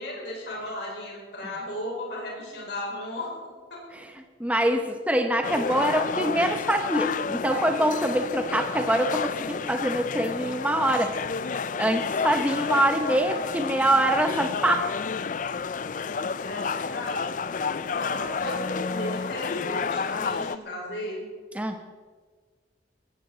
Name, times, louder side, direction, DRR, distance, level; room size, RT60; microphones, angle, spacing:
voice 1, 0.0-3.4 3.7-3.8 16.4-17.3 17.6-21.3, left 1 dB, 60° left, -2 dB, 4.8 m, -35 dB
voice 2, 4.0-11.1 11.8-14.9 21.5-21.8, right 1 dB, 5° right, 5 dB, 0.8 m, -24 dB
sound 1, 5.4-20.6, left 5 dB, 40° left, 0.4 m, -30 dB
19.0 x 16.0 x 4.0 m, 1.5 s
head